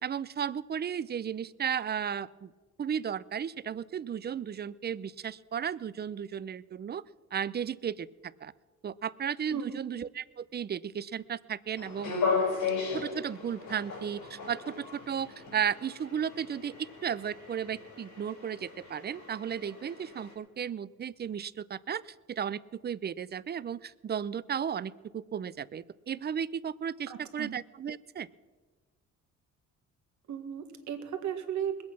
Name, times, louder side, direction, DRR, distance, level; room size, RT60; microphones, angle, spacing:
voice 1, 0.0-2.5 2.8-7.0 7.3-8.5 8.8-12.1 12.9-28.3, right 8 dB, 35° right, 18 dB, 0.5 m, -34 dB
sound 1, 11.8-20.3, left 5 dB, 75° left, 5.2 m, -36 dB
voice 2, 27.1-27.5 30.3-31.8, right 8 dB, 70° right, 6 dB, 1.7 m, -35 dB
21.0 x 8.5 x 6.0 m, 1.3 s
cardioid pair, 90°, 30 cm